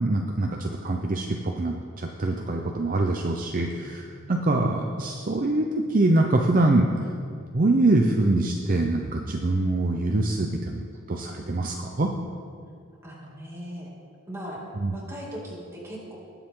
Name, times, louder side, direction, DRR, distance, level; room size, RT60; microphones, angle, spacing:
voice 1, 0.0-6.9 7.5-12.1 14.8-14.9, right 2 dB, 40° right, 2 dB, 0.6 m, -24 dB
voice 2, 3.7-4.2 13.0-13.9 14.3-14.6 14.9-16.2, equal, 15° right, -4 dB, 2.5 m, -39 dB
19.5 x 7.1 x 3.8 m, 2.3 s
head